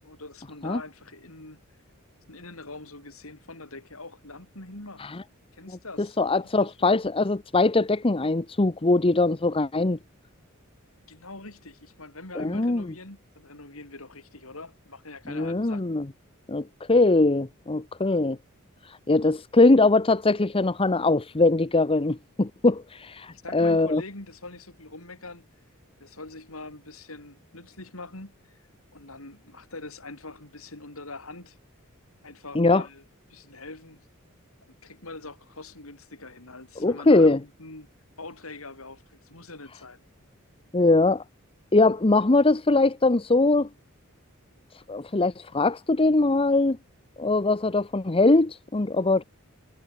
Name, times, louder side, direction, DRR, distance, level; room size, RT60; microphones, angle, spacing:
voice 1, 0.0-1.6 2.3-5.1 5.5-7.0 11.1-15.8 23.3-25.5 26.0-28.6 28.9-31.6 32.2-33.0 33.3-34.1 34.8-37.9 38.2-40.0, left 2 dB, 75° left, 5.9 m, -43 dB
voice 2, 6.0-10.0 12.4-12.9 15.3-16.1 16.5-18.4 19.1-24.0 32.5-32.8 36.8-37.4 40.7-41.2 41.7-43.7 44.9-46.8 47.2-49.2, left 2 dB, 25° left, 0.8 m, -21 dB
head